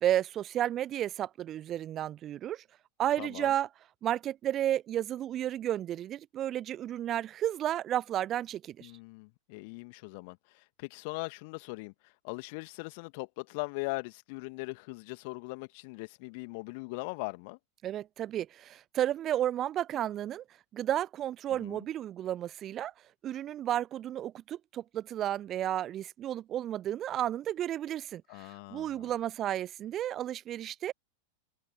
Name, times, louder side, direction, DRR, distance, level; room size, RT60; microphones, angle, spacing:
voice 1, 0.0-2.6 3.0-3.7 4.0-8.9 17.8-20.4 20.7-22.9 23.2-30.9, right 11 dB, 30° right, 0.5 m, -32 dB
voice 2, 3.2-3.5 8.8-17.6 21.6-21.8 28.3-29.1, left 29 dB, 45° left, 2.0 m, -40 dB
figure-of-eight pair, 90°, 0 cm